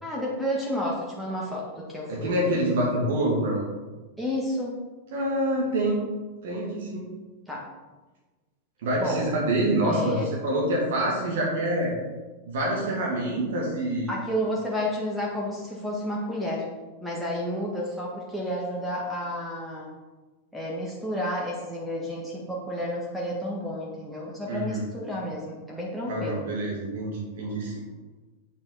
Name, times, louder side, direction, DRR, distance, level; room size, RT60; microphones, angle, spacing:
voice 1, 0.0-2.3 4.2-4.7 7.5-7.7 9.0-9.2 9.8-10.3 14.1-16.7 17.0-19.9 20.5-26.4, equal, ahead, -4 dB, 1.8 m, -31 dB
voice 2, 2.1-3.6 5.1-6.0 6.4-7.1 8.8-11.9 12.5-14.1 24.5-24.8 26.1-27.7, right 1 dB, 55° right, -4 dB, 2.7 m, -26 dB
8.8 x 7.7 x 4.2 m, 1.2 s
figure-of-eight pair, 90°, 0 cm